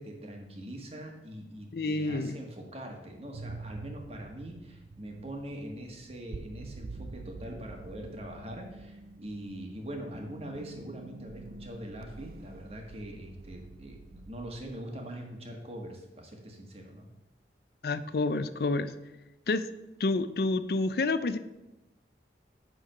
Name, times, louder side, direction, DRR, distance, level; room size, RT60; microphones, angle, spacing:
voice 1, 0.0-17.1, right 1 dB, 35° right, 2 dB, 1.4 m, -43 dB
voice 2, 1.7-2.4 17.8-18.9 19.5-19.6 20.0-21.4, left 3 dB, 60° left, 13 dB, 0.4 m, -28 dB
sound 1, 3.3-14.8, right 3 dB, 55° right, 0.4 m, -46 dB
10.0 x 3.8 x 6.5 m, 1.0 s
head